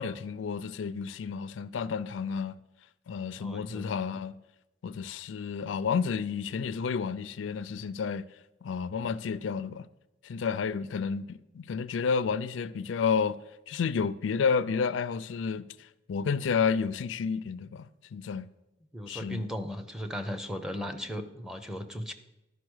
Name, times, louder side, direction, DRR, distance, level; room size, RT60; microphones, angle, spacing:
voice 1, 0.0-2.6 3.1-4.4 4.8-8.3 8.6-9.9 10.2-13.4 13.7-18.5 19.1-19.4, left 6 dB, 80° left, 0.4 m, -31 dB
voice 2, 3.4-3.9 18.9-22.1, equal, 5° right, 0.6 m, -36 dB
11.5 x 5.2 x 6.3 m
head